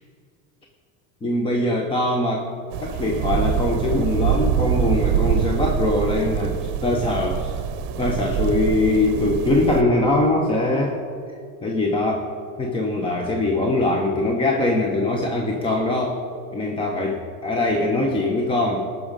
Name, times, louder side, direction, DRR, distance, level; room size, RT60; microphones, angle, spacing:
voice 1, 1.2-2.5 2.8-7.6 8.0-11.0 11.6-12.3 12.6-16.2 16.5-18.8, left 2 dB, 15° left, 2 dB, 0.7 m, -22 dB
sound 1, 2.7-9.8, right 9 dB, 60° right, 0.8 m, -24 dB
18.5 x 6.3 x 5.1 m, 2.5 s
cardioid pair, 155°, 40 cm